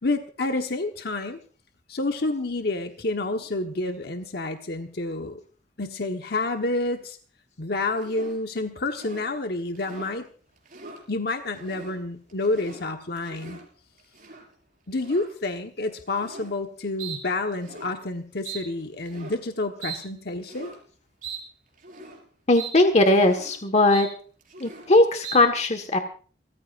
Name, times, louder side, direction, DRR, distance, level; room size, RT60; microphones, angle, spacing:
voice 1, 0.0-1.4 1.9-5.4 5.8-7.2 7.6-10.3 11.1-13.6 14.9-20.7, left 2 dB, 60° left, 5 dB, 1.3 m, -29 dB
sound 1, 8.0-8.4 8.9-9.3 9.7-10.2 10.6-11.0 11.5-12.0 12.3-12.8 13.2-13.7 14.1-14.4 15.0-15.3 16.1-16.5 17.0-17.2 17.5-17.9 18.4-18.6 19.0-19.4 19.8-20.0 20.4-20.8 21.2-21.4 21.8-22.2 22.5-22.7 23.0-23.5 23.9-24.1 24.4-24.9 25.2-25.4, right 5 dB, 50° right, 5.8 m, -40 dB
voice 2, 22.5-24.1 24.6-26.0, left 2 dB, 40° left, 5 dB, 1.6 m, -19 dB
29.5 x 15.0 x 2.6 m, 0.40 s
head